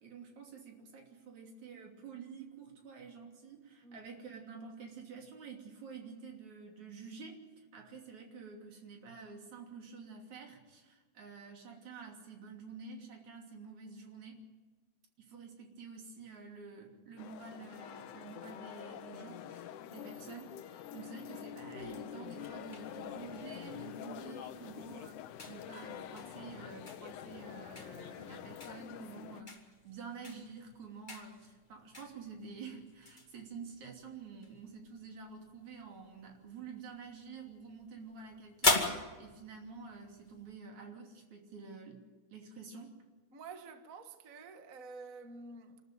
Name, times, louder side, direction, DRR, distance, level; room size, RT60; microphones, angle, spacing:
voice 1, 0.0-14.4 15.2-25.2 25.5-42.0 42.3-42.9, right 5 dB, 65° right, 4.3 m, -49 dB
sound 1, 17.2-29.4, left 10 dB, 80° left, 2.3 m, -47 dB
sound 2, 21.8-40.6, left 2 dB, 15° left, 2.0 m, -41 dB
voice 2, 43.3-45.8, right 4 dB, 40° right, 1.2 m, -49 dB
26.0 x 13.5 x 9.1 m
omnidirectional pair, 3.5 m